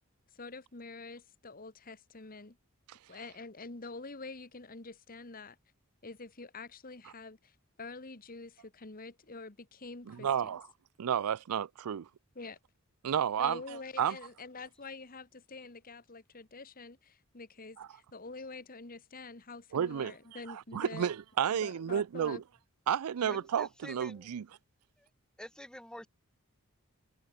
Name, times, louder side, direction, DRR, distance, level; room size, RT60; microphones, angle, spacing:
voice 1, 0.3-2.6 3.1-5.6 6.0-10.6 12.3-12.6 13.4-21.1 21.5-22.4 23.2-23.5, left 3 dB, 40° left, 1.5 m, -46 dB
voice 2, 10.1-10.7 11.0-12.1 13.0-13.6 14.0-14.2 17.8-17.9 19.7-20.1 20.5-22.4 22.9-24.5, right 8 dB, 90° right, 0.4 m, -31 dB
voice 3, 23.3-24.3 25.0-25.1 25.4-26.1, equal, 5° left, 4.4 m, -48 dB
head